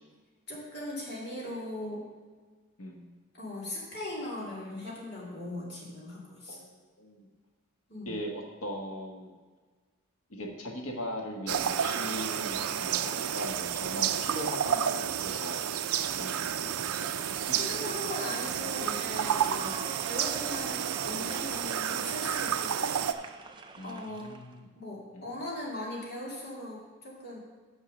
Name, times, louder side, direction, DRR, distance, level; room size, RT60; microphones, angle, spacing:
voice 1, 0.5-2.1 3.3-6.6 7.9-8.1 17.6-23.0 23.8-24.3 24.8-27.4, left 1 dB, 50° left, -4 dB, 2.4 m, -39 dB
voice 2, 2.8-3.1 6.5-7.3 8.0-9.3 10.3-17.6 19.6-19.8 23.8-24.7 25.1-25.3, left 1 dB, 90° left, 1 dB, 1.4 m, -40 dB
sound 1, 11.5-23.1, right 9 dB, 90° right, 0.4 m, -31 dB
sound 2, 17.2-24.6, right 4 dB, 20° right, 0.4 m, -45 dB
6.4 x 6.3 x 6.4 m, 1.4 s
head